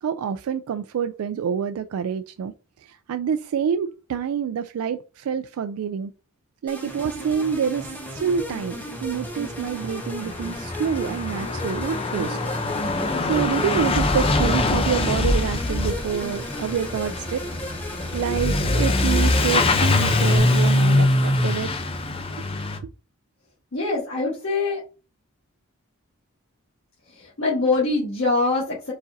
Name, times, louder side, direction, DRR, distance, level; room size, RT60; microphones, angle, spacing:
voice 1, 0.0-6.1 6.6-12.4 13.2-17.4 18.1-21.7, right 7 dB, 80° right, 0.3 m, -27 dB
sound 1, 6.7-20.4, equal, 10° left, 0.9 m, -35 dB
Truck / Accelerating revving vroom, 9.1-9.2 9.4-22.8, left 2 dB, 25° left, 0.5 m, -23 dB
voice 2, 23.7-24.8 27.1-28.9, left 3 dB, 60° left, 1.5 m, -23 dB
4.7 x 4.1 x 2.6 m
head